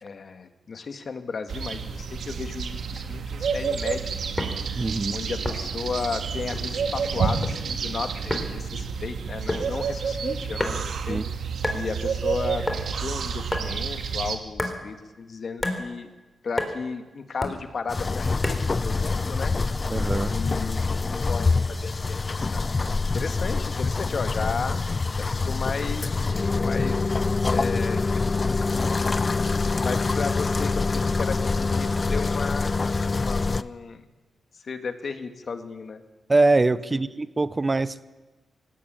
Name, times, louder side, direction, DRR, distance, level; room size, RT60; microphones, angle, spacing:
voice 1, 0.0-4.1 5.1-11.2 11.7-16.1 16.4-18.6 18.8-19.5 20.3-22.7 23.1-24.8 25.2-27.1 27.4-29.1 29.7-32.7 33.1-34.0 34.5-36.0 36.9-37.0, left 5 dB, 55° left, 8 dB, 1.9 m, -34 dB
sound 1, 1.5-14.4, right 5 dB, 75° right, 2.0 m, -29 dB
sound 2, 4.4-4.6 5.4-5.8 6.5-6.8 7.2-7.6 8.3-8.5 9.5-9.7 10.6-11.0 11.6-11.8 12.7-12.8 13.5-13.7 14.6-14.8 15.6-15.8 16.6-16.7 17.4-17.6 18.4-18.7, left 1 dB, 20° left, 3.7 m, -29 dB
voice 2, 4.8-5.2 11.1-11.2 19.9-20.4 36.3-38.0, right 2 dB, 25° right, 15 dB, 0.8 m, -23 dB
sound 3, 17.9-33.6, left 3 dB, 35° left, 0.6 m, -25 dB
18.5 x 16.5 x 8.9 m, 1.2 s
cardioid pair, 80°, 0 cm